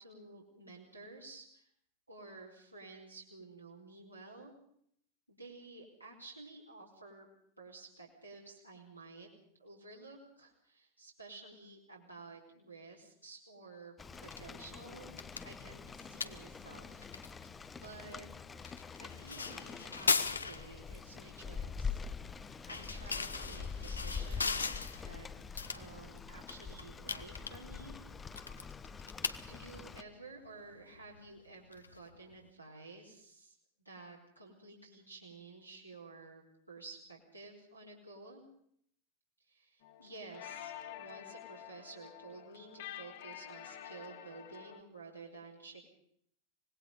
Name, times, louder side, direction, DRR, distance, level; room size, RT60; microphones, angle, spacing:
voice 1, 0.0-1.7 2.1-4.5 5.3-7.3 7.6-9.3 9.6-13.9 14.2-15.2 15.4-17.1 17.8-18.3 19.0-22.0 22.6-25.3 25.7-27.9 29.5-33.6 33.8-38.4 39.4-45.8, right 3 dB, 90° right, -3 dB, 4.5 m, -52 dB
Rain, 14.0-30.0, left 5 dB, 15° left, 0.7 m, -45 dB
sound 1, 14.1-32.5, left 5 dB, 75° left, 1.1 m, -41 dB
sound 2, 39.8-44.8, left 11 dB, 55° left, 1.9 m, -48 dB
25.5 x 20.0 x 5.5 m, 0.68 s
figure-of-eight pair, 90°, 0 cm